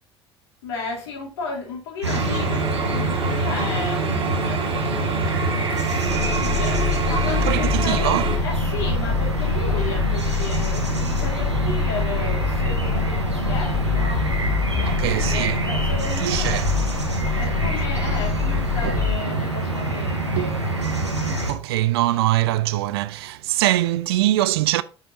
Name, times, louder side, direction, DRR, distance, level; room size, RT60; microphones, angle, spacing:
voice 1, 0.6-4.9 5.1-5.4 5.7-6.8 7.1-14.2 14.7-16.7 17.3-20.6, left 4 dB, 70° left, 3.6 m, -33 dB
sound 1, 2.0-21.5, right 2 dB, 85° right, 1.4 m, -25 dB
sound 2, 2.1-8.4, right 4 dB, 40° right, 1.9 m, -28 dB
sound 3, 6.1-19.2, left 9 dB, 25° left, 0.3 m, -26 dB
voice 2, 7.3-8.3 14.9-15.6 16.2-16.7 18.8-19.0 20.4-20.5 21.0-21.1 21.5-24.8, right 15 dB, 65° right, 0.5 m, -23 dB
7.7 x 7.3 x 2.9 m
figure-of-eight pair, 60°, 14 cm